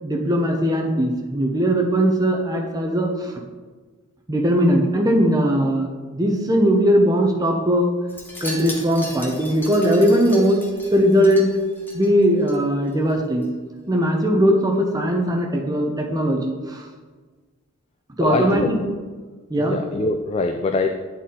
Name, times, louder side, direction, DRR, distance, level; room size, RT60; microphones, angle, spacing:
voice 1, 0.0-3.3 4.3-7.9 8.4-10.6 10.9-11.5 11.9-13.5 13.9-16.8 18.2-18.8 19.5-19.8, equal, 15° right, 1 dB, 0.7 m, -19 dB
Wind chime, 8.1-12.6 12.9-13.2 13.4-13.5, left 1 dB, 10° left, 1.0 m, -37 dB
voice 2, 18.2-18.8 19.6-20.9, left 3 dB, 30° left, 5 dB, 0.3 m, -23 dB
9.0 x 4.2 x 3.8 m, 1.4 s
head